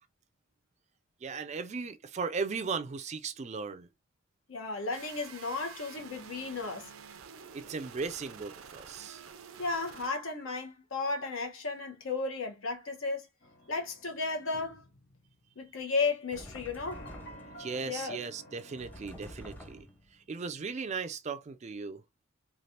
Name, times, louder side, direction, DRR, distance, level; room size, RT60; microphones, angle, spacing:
voice 1, 1.2-3.9 7.5-9.2 17.6-19.8 20.3-22.0, right 5 dB, 35° right, 0.4 m, -37 dB
voice 2, 4.5-6.9 9.6-13.3 13.7-14.8 15.6-17.1 17.8-18.2, left 3 dB, 75° left, 1.0 m, -34 dB
sound 1, 4.9-10.1, right 7 dB, 90° right, 0.5 m, -49 dB
sound 2, 13.4-15.8 16.9-20.5, equal, 55° left, 0.6 m, -52 dB
sound 3, 16.3-17.6 18.8-20.1, equal, 10° left, 0.7 m, -48 dB
3.2 x 2.3 x 2.7 m
head